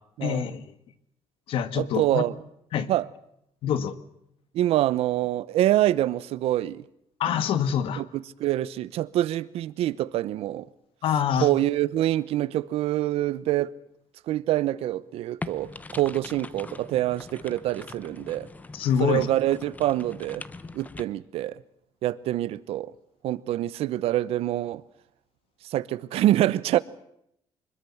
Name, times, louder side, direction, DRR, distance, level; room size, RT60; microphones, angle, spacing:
voice 1, 0.2-0.7 1.5-2.2 2.7-2.9 3.6-4.0 7.2-8.0 11.0-11.5 18.7-19.3, left 8 dB, 60° left, 1.6 m, -25 dB
voice 2, 1.8-2.4 2.9-3.0 4.5-6.8 8.0-8.1 8.4-10.7 11.4-13.7 14.3-18.5 19.0-20.4 20.7-21.5 22.0-22.9 23.2-24.8 25.7-26.8, right 14 dB, 75° right, 0.9 m, -25 dB
sound 1, 15.4-21.0, left 3 dB, 15° left, 0.8 m, -42 dB
25.0 x 21.5 x 7.2 m
cardioid pair, 160°, 10 cm